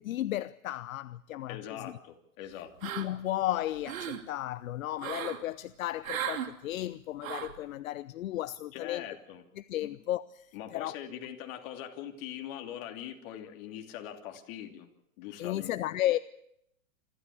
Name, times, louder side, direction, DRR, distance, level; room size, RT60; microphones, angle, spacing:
voice 1, 0.0-1.9 2.5-9.0 9.6-11.0 15.4-16.2, left 14 dB, 70° left, 0.7 m, -34 dB
voice 2, 1.5-2.7 8.7-9.4 9.8-9.9 10.5-14.9 15.2-15.8, left 10 dB, 45° left, 2.9 m, -42 dB
sound 1, 2.8-3.3 3.7-4.2 5.0-5.4 6.0-6.5 7.2-7.6, right 9 dB, 70° right, 2.6 m, -36 dB
27.0 x 13.0 x 8.5 m
hypercardioid pair, 135°, 42 cm